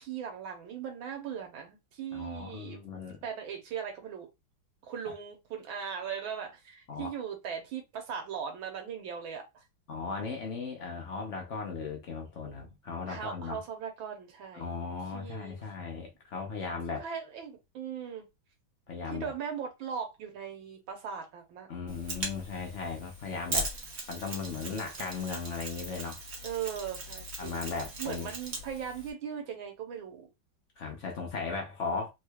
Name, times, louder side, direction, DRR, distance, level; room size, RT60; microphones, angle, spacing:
voice 1, 0.0-2.8 3.2-4.3 4.8-9.6 13.1-14.7 15.1-15.6 17.0-18.3 19.1-21.7 24.2-24.5 26.4-30.3, right 7 dB, 80° right, 1.7 m, -39 dB
voice 2, 2.1-3.2 6.9-7.1 9.9-13.6 14.5-17.1 18.9-19.3 21.7-23.7 24.1-26.2 27.4-28.3 30.8-32.1, left 4 dB, 55° left, 0.8 m, -37 dB
Mechanisms, 21.9-29.1, right 2 dB, 40° right, 1.0 m, -39 dB
3.7 x 3.1 x 2.3 m
omnidirectional pair, 2.2 m